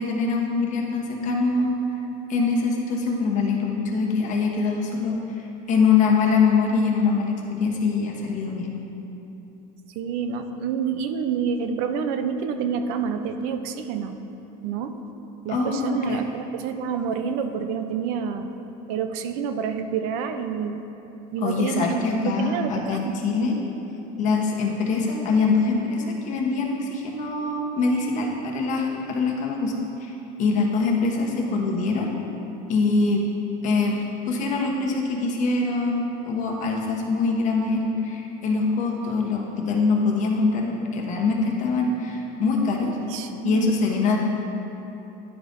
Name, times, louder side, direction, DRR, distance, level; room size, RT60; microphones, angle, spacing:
voice 1, 0.0-1.8 2.3-8.7 15.5-16.2 21.4-23.6 24.2-29.7 30.0-32.1 32.7-33.3 33.6-34.0 34.3-43.0 43.4-44.2, left 4 dB, 40° left, -1 dB, 1.0 m, -23 dB
voice 2, 10.0-14.2 14.6-15.0 15.4-18.5 18.9-20.8 21.3-23.2 43.0-43.9, right 6 dB, 75° right, 8 dB, 0.6 m, -28 dB
11.0 x 5.0 x 2.6 m, 3.0 s
supercardioid pair, 135°, 19 cm